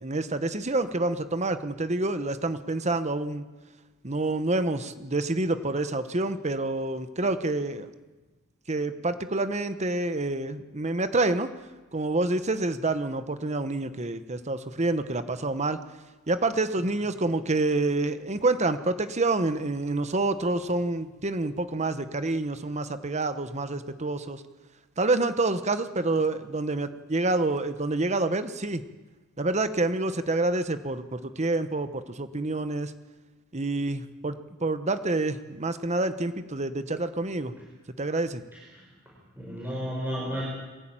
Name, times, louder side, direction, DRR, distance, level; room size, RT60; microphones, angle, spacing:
voice 1, 0.0-3.4 4.0-7.9 8.7-11.5 11.9-15.8 16.3-24.4 25.0-28.8 29.4-32.9 33.5-37.5 38.0-38.4, right 2 dB, 35° right, 10 dB, 1.1 m, -27 dB
voice 2, 38.5-38.8 39.4-40.4, equal, 10° right, -5 dB, 5.8 m, -33 dB
23.0 x 15.5 x 9.0 m, 1.2 s
head